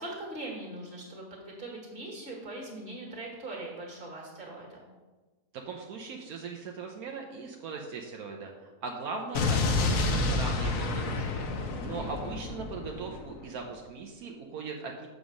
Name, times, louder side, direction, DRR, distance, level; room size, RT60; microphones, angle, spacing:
voice 1, 0.0-4.8 11.9-12.3, right 2 dB, 35° right, -1 dB, 2.1 m, -41 dB
voice 2, 5.5-11.5 11.8-15.1, right 4 dB, 75° right, 1 dB, 1.2 m, -39 dB
Explosion, 9.3-13.4, left 3 dB, 65° left, 1.2 m, -29 dB
7.1 x 5.0 x 6.3 m, 1.3 s
omnidirectional pair, 1.6 m